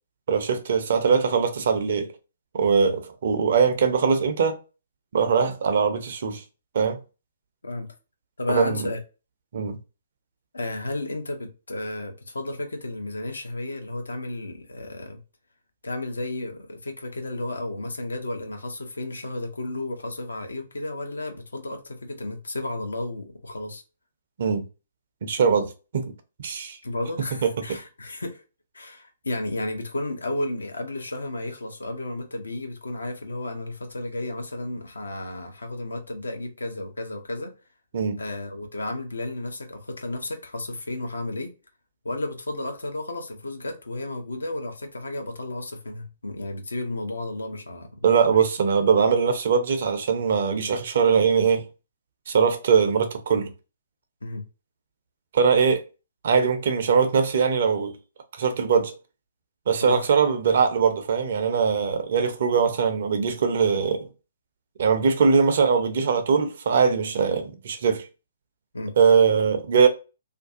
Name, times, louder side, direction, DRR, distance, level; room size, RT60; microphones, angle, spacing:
voice 1, 0.3-2.1 2.5-4.6 5.1-6.4 6.7-7.0 8.5-8.9 9.5-9.8 24.4-24.6 25.2-26.1 26.4-26.8 27.4-27.5 37.9-38.2 48.0-51.7 52.3-53.5 55.3-55.8 56.2-58.0 58.4-58.9 59.7-64.1 64.8-68.1 69.0-69.9, right 6 dB, 50° right, 0.5 m, -21 dB
voice 2, 7.6-7.9 8.4-9.0 10.5-15.2 15.8-23.8 26.8-28.4 28.7-37.5 38.2-41.5 42.0-48.4 54.2-54.4 59.8-60.0 68.7-68.9, left 2 dB, 70° left, 0.6 m, -33 dB
2.5 x 2.3 x 2.5 m
figure-of-eight pair, 125°, 0 cm